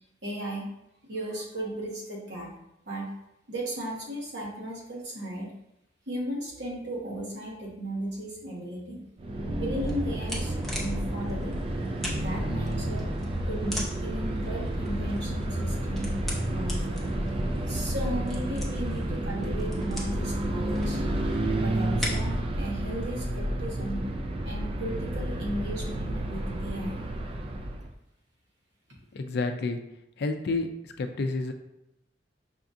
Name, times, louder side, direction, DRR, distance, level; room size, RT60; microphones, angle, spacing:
voice 1, 0.2-0.7 1.1-2.5 2.9-3.1 3.5-5.5 6.1-9.0 9.5-11.5 12.2-13.0 13.5-16.1 16.5-17.0 17.7-21.0 21.6-24.0 24.4-27.0, right 1 dB, 75° right, -3 dB, 1.2 m, -35 dB
sound 1, 9.2-27.9, right 1 dB, 30° right, 0.3 m, -30 dB
sound 2, 9.8-22.4, equal, ahead, 0.7 m, -40 dB
voice 2, 29.1-29.8 30.2-31.5, left 3 dB, 65° left, 7 dB, 0.4 m, -30 dB
5.8 x 2.4 x 2.6 m, 0.82 s
head